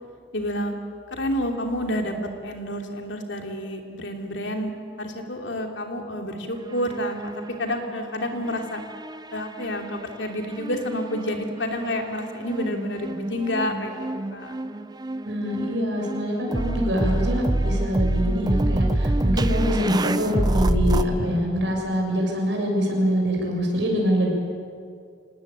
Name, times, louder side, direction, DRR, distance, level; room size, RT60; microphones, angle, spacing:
voice 1, 0.3-0.8 1.1-2.1 2.4-4.7 5.0-7.3 7.6-8.8 9.3-14.5, left 1 dB, 75° left, 3 dB, 3.0 m, -29 dB
sound 1, 6.6-8.2 8.5-9.9 10.6-21.0, right 1 dB, 20° right, 0.6 m, -27 dB
voice 2, 15.2-24.3, equal, 70° right, 0 dB, 6.8 m, -24 dB
26.0 x 19.0 x 8.9 m, 2.3 s
head